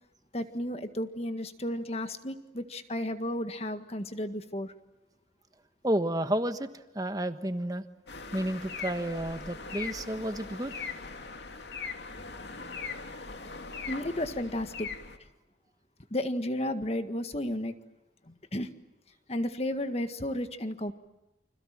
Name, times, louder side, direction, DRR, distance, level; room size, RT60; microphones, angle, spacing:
voice 1, 0.3-4.7 13.9-14.9 16.1-17.7 18.3-18.7 19.3-20.9, left 1 dB, 35° left, 9 dB, 1.7 m, -33 dB
voice 2, 5.8-6.7 6.9-7.8 8.3-10.7, right 1 dB, 20° right, 9 dB, 1.3 m, -31 dB
sound 1, 8.1-15.2, left 4 dB, 70° left, 2.4 m, -40 dB
30.0 x 26.0 x 7.5 m, 0.95 s
head